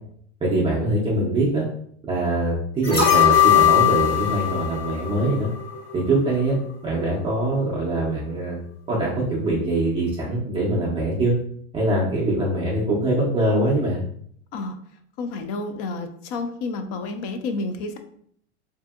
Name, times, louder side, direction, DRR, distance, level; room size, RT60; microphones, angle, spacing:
voice 1, 0.4-1.6 2.1-5.5 5.9-6.6 6.8-8.6 8.9-11.3 11.7-14.0, right 1 dB, 15° right, -6 dB, 0.4 m, -23 dB
sound 1, 2.8-6.0 6.3-6.4, left 9 dB, 85° left, 1.3 m, -19 dB
voice 2, 15.2-18.0, left 3 dB, 45° left, 7 dB, 0.4 m, -30 dB
2.7 x 2.6 x 2.3 m, 0.64 s
hypercardioid pair, 120°, 36 cm